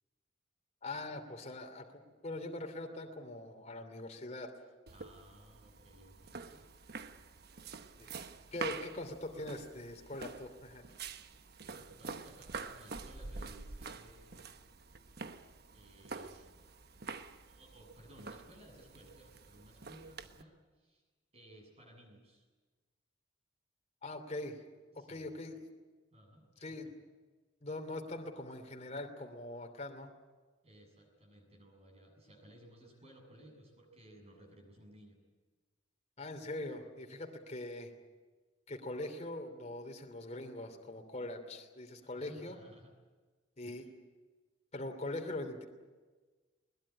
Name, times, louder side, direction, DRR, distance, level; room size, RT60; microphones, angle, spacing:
voice 1, 0.8-4.5 8.0-8.1 8.5-10.8 24.0-24.6 24.9-25.6 26.6-26.9 27.6-30.1 36.2-37.9 38.7-42.6 43.6-43.9 44.7-45.6, left 2 dB, 35° left, 4 dB, 2.9 m, -42 dB
voice 2, 4.9-6.7 11.7-14.6 15.7-16.6 17.5-21.0 21.3-22.5 24.9-25.3 26.1-26.9 30.6-35.2 42.0-42.9 43.6-43.9, right 1 dB, 35° right, 1 dB, 7.6 m, -58 dB
sound 1, 4.9-20.4, right 4 dB, 55° right, 1.1 m, -47 dB
21.5 x 20.5 x 9.9 m, 1.3 s
head